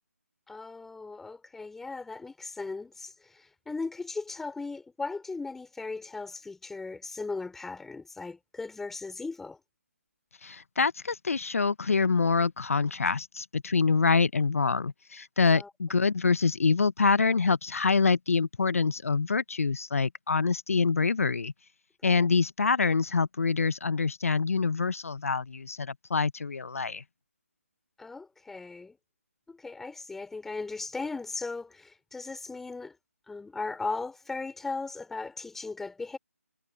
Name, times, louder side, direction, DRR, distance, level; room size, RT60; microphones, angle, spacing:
voice 1, 0.5-9.6 15.5-15.7 22.0-22.3 28.0-29.0 29.5-33.0 33.3-36.2, left 3 dB, 5° left, 3.4 m, -37 dB
voice 2, 10.4-21.5 22.0-27.0, left 4 dB, 65° left, 0.9 m, -26 dB
figure-of-eight pair, 155°, 8 cm